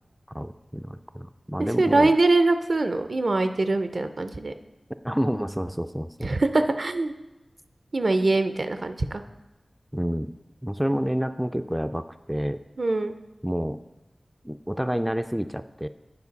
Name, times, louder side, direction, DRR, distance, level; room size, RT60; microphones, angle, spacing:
voice 1, 0.3-2.1 5.0-6.3 9.9-10.3 10.6-12.6 13.4-13.8 14.4-15.9, equal, 5° right, 9 dB, 0.3 m, -29 dB
voice 2, 1.8-4.5 6.2-7.1 7.9-9.2 12.8-13.1, right 2 dB, 70° right, 9 dB, 0.5 m, -23 dB
9.5 x 5.0 x 4.0 m, 1.0 s
wide cardioid pair, 45°, 0 cm